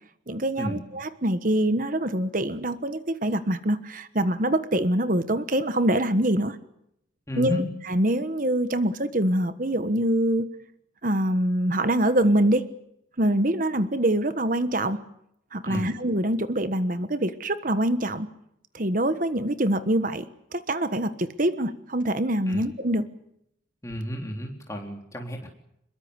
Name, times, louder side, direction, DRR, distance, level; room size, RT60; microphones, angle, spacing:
voice 1, 0.3-6.6 7.4-7.6 7.9-10.5 11.0-12.7 13.2-15.0 15.5-18.3 18.7-20.2 20.5-23.0, right 1 dB, 45° right, 11 dB, 1.3 m, -24 dB
voice 2, 7.3-7.7 15.6-15.9 22.5-22.7 23.8-25.5, equal, 15° left, 1 dB, 3.9 m, -32 dB
25.5 x 22.0 x 8.2 m, 0.78 s
head